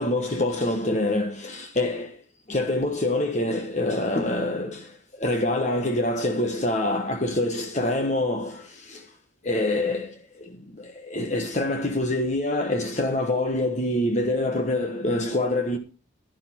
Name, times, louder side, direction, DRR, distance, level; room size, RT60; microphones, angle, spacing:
voice 1, 0.0-2.2 2.5-9.1 9.4-15.8, left 1 dB, 35° left, 1.3 m, -26 dB
11.5 x 11.5 x 4.4 m
head